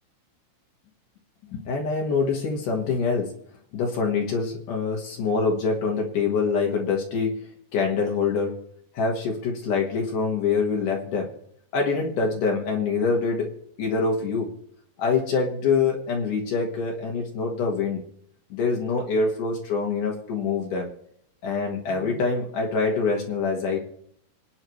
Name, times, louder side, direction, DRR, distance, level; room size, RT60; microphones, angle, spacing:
voice 1, 1.4-3.3 3.7-7.4 7.7-8.6 8.9-11.3 11.7-13.5 13.8-14.5 15.0-18.0 18.5-20.9 21.4-23.8, left 4 dB, 65° left, 0 dB, 3.0 m, -25 dB
26.0 x 9.5 x 3.2 m, 0.70 s
omnidirectional pair, 4.0 m